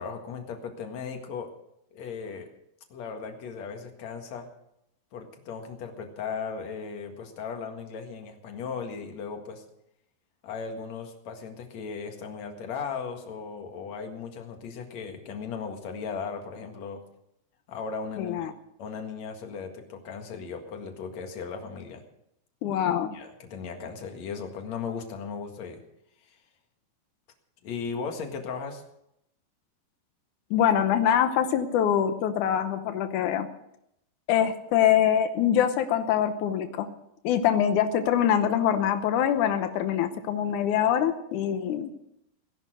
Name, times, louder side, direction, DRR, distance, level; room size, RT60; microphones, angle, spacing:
voice 1, 0.0-1.5 1.9-2.5 2.9-4.5 5.1-9.6 10.4-17.0 17.7-18.4 18.8-22.0 23.1-25.8 26.3-26.4 27.6-28.8, left 5 dB, 50° left, 4 dB, 2.5 m, -37 dB
voice 2, 18.2-18.5 22.6-23.1 30.5-33.5 34.3-36.9 37.2-41.9, left 9 dB, 90° left, 8 dB, 1.7 m, -24 dB
18.0 x 11.0 x 6.4 m, 0.79 s
omnidirectional pair, 4.9 m